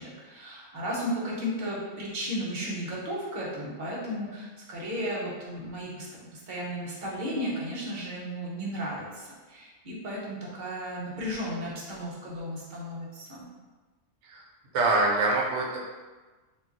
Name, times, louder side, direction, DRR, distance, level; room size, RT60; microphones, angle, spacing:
voice 1, 0.0-13.4, equal, 45° right, -5 dB, 0.8 m, -34 dB
voice 2, 14.7-15.9, right 2 dB, 75° right, -1 dB, 0.9 m, -25 dB
2.3 x 2.2 x 3.8 m, 1.3 s
omnidirectional pair, 1.3 m